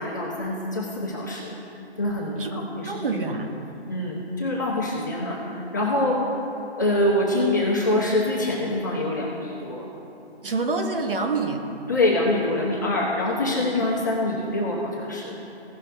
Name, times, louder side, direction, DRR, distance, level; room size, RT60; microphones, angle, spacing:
voice 1, 0.0-1.5 2.0-2.9 3.9-5.4 5.7-6.2 6.8-9.8 11.9-15.4, left 1 dB, 15° left, -5 dB, 0.7 m, -25 dB
voice 2, 2.8-3.5 10.4-11.6, right 3 dB, 55° right, 3 dB, 1.3 m, -26 dB
16.5 x 6.0 x 3.3 m, 3.0 s
hypercardioid pair, 165°, 33 cm